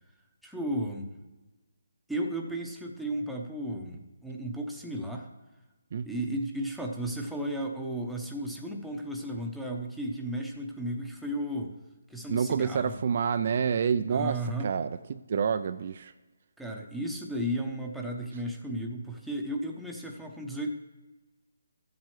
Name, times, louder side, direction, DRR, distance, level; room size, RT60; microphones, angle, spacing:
voice 1, 0.4-1.1 2.1-5.3 6.1-11.7 12.1-13.0 14.1-14.7 16.6-20.7, right 1 dB, ahead, -1 dB, 0.8 m, -34 dB
voice 2, 12.3-16.1, right 7 dB, 45° right, 11 dB, 0.3 m, -28 dB
14.0 x 7.4 x 3.2 m, 1.2 s
hypercardioid pair, 155°, 0 cm